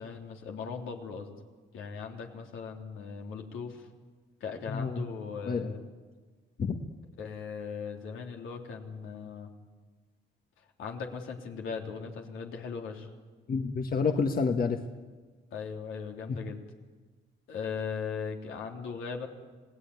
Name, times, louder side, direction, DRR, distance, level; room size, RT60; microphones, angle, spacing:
voice 1, 0.0-1.3 1.7-3.9 4.4-5.8 7.2-9.5 10.8-13.1 15.5-16.6 17.5-19.3, left 5 dB, 80° left, 2 dB, 3.3 m, -38 dB
voice 2, 4.7-5.0 5.5-5.7 6.6-6.8 13.5-14.8 16.3-16.4, left 5 dB, 45° left, 5 dB, 1.6 m, -28 dB
27.0 x 17.5 x 9.6 m, 1.4 s
cardioid pair, 90°, 20 cm